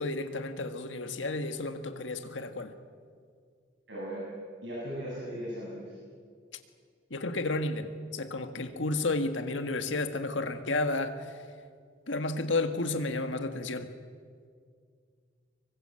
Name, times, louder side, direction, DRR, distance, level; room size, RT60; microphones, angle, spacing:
voice 1, 0.0-2.7 7.1-11.4 12.1-13.9, left 2 dB, 85° left, 8 dB, 1.7 m, -32 dB
voice 2, 3.9-4.3 4.6-5.8, equal, 65° right, -7 dB, 8.0 m, -37 dB
26.0 x 23.5 x 7.8 m, 2.1 s
head